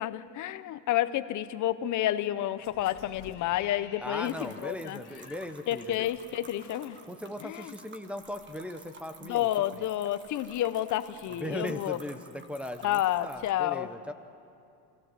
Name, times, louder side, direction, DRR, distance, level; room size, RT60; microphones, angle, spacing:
voice 1, 0.0-5.0 5.7-7.0 7.4-7.7 9.2-12.0 12.8-13.9, left 13 dB, 40° left, 13 dB, 0.7 m, -30 dB
sound 1, 2.6-7.8 8.2-8.3, left 8 dB, 55° left, 2.1 m, -53 dB
voice 2, 4.0-6.1 7.0-9.8 11.3-14.1, left 1 dB, 5° right, 6 dB, 0.5 m, -39 dB
sound 2, 4.2-13.5, right 4 dB, 25° right, 1.4 m, -53 dB
24.5 x 15.5 x 7.5 m, 2.6 s
cardioid pair, 135°, 49 cm